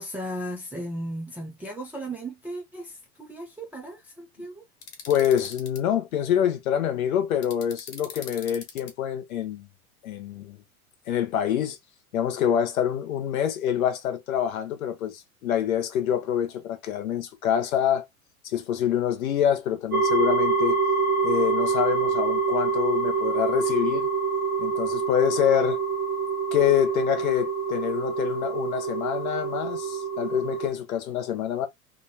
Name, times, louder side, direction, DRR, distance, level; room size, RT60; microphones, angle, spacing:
voice 1, 0.0-4.6, right 1 dB, 5° right, 0.3 m, -36 dB
sound 1, 4.8-5.8 7.4-8.9, left 5 dB, 30° left, 1.1 m, -41 dB
voice 2, 5.1-9.7 10.0-10.6 11.1-11.8 12.1-18.0 18.4-20.8 21.2-24.1 24.6-25.8 26.5-31.7, left 10 dB, 70° left, 1.0 m, -26 dB
sound 2, 19.9-30.7, right 5 dB, 20° right, 0.8 m, -26 dB
2.8 x 2.3 x 2.6 m
figure-of-eight pair, 90°, 44 cm